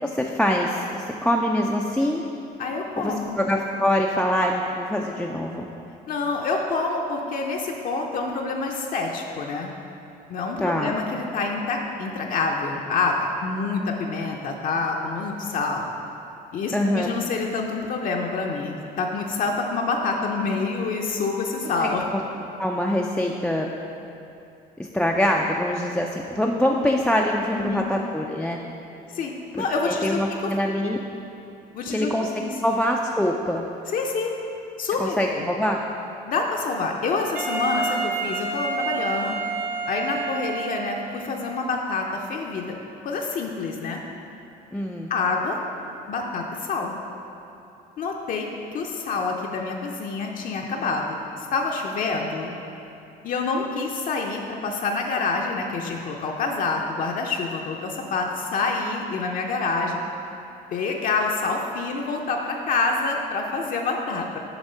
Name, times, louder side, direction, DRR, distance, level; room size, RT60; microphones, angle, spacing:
voice 1, 0.0-2.2 3.0-5.7 10.6-10.9 16.7-17.1 21.8-22.2 22.6-23.7 24.8-28.6 29.6-31.0 31.9-32.3 32.6-33.6 35.0-35.8 44.7-45.1, left 1 dB, 5° left, -1 dB, 0.3 m, -24 dB
voice 2, 2.6-3.4 6.1-9.7 10.3-13.2 13.4-15.9 16.5-22.0 27.5-28.0 29.1-30.2 31.7-32.1 32.4-32.5 33.9-34.3 34.8-35.5 36.3-39.4 39.9-42.7 43.0-44.0 45.1-45.6 46.1-47.0 48.0-52.6 53.2-60.0 60.7-64.4, left 4 dB, 55° left, 1 dB, 0.6 m, -27 dB
Wind instrument woodwind instrument, 37.3-41.3, right 4 dB, 60° right, 1.0 m, -29 dB
7.0 x 3.5 x 5.4 m, 2.8 s
cardioid pair, 110°, 17 cm